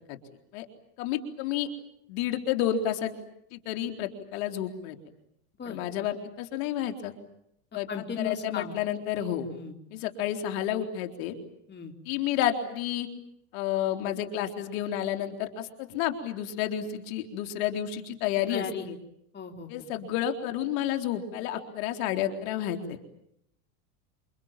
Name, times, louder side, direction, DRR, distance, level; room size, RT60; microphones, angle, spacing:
voice 1, 1.0-1.7 2.1-3.1 3.5-5.0 5.7-7.1 7.7-7.9 8.2-9.5 9.9-11.4 12.1-13.1 13.5-19.0 19.7-23.0, left 10 dB, 65° left, 6 dB, 4.0 m, -30 dB
voice 2, 7.9-8.8 9.5-9.7 11.7-11.9 18.5-18.9 19.3-19.9, left 6 dB, 25° left, 4 dB, 3.8 m, -36 dB
28.5 x 27.0 x 7.4 m, 0.75 s
supercardioid pair, 115°, 44 cm